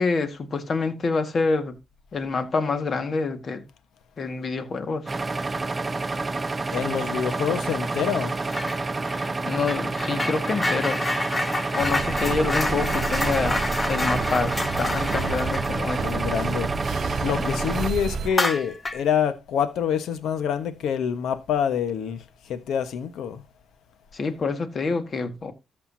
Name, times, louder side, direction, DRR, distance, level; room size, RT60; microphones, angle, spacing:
voice 1, 0.0-1.7 2.1-3.6 4.2-5.2 9.5-11.0 11.7-13.6 13.9-16.2 17.4-17.8 24.1-25.5, left 4 dB, 45° left, 1.7 m, -27 dB
sound 1, 5.1-17.9, right 3 dB, 25° right, 0.8 m, -29 dB
voice 2, 6.7-8.3 16.0-16.7 17.0-23.4, left 8 dB, 75° left, 1.2 m, -26 dB
sound 2, 8.5-8.8 9.1-17.3 17.6-17.7 18.3-19.1, left 2 dB, 20° left, 1.2 m, -29 dB
sound 3, 11.8-18.3, right 5 dB, 60° right, 0.8 m, -31 dB
13.5 x 6.8 x 2.8 m
cardioid pair, 90°, 0 cm